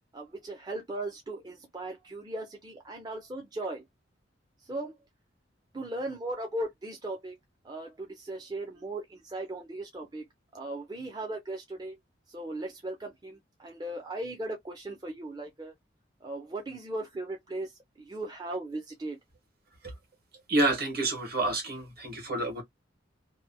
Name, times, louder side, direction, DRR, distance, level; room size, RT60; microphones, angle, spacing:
voice 1, 0.1-3.8 4.6-5.0 5.7-7.4 7.6-10.3 10.5-12.0 12.3-15.7 16.2-19.2, right 2 dB, 20° right, 0.5 m, -37 dB
voice 2, 20.5-22.6, right 2 dB, 55° right, 1.2 m, -28 dB
2.8 x 2.2 x 2.6 m
head